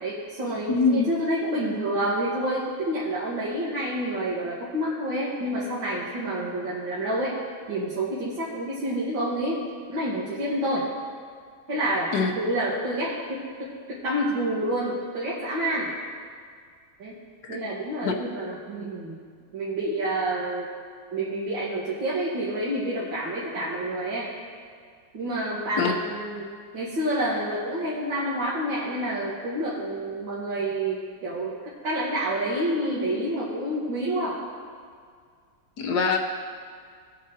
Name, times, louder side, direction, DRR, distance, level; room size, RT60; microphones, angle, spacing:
voice 1, 0.0-7.4 7.7-9.6 9.9-10.8 11.7-12.1 12.4-15.9 17.0-17.1 17.5-19.2 19.5-20.7 21.1-24.3 25.1-26.5 26.7-34.4, right 1 dB, 75° right, -7 dB, 2.2 m, -28 dB
voice 2, 0.7-1.0 12.1-12.3 17.4-17.6 18.0-18.1 25.8-25.9 35.8-36.2, left 4 dB, 60° left, 3 dB, 1.4 m, -23 dB
18.0 x 9.3 x 2.9 m, 2.1 s
omnidirectional pair, 2.1 m